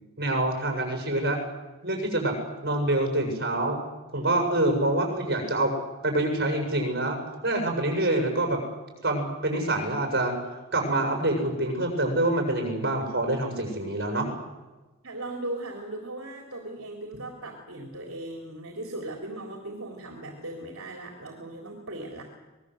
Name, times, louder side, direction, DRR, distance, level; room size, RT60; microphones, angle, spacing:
voice 1, 0.2-1.4 1.8-2.3 2.6-3.8 4.1-5.7 6.0-8.6 9.0-10.3 10.7-14.3, right 1 dB, 45° right, 3 dB, 7.4 m, -26 dB
voice 2, 15.0-22.2, right 1 dB, 70° right, 2 dB, 3.8 m, -38 dB
26.0 x 21.0 x 8.0 m, 1.2 s
head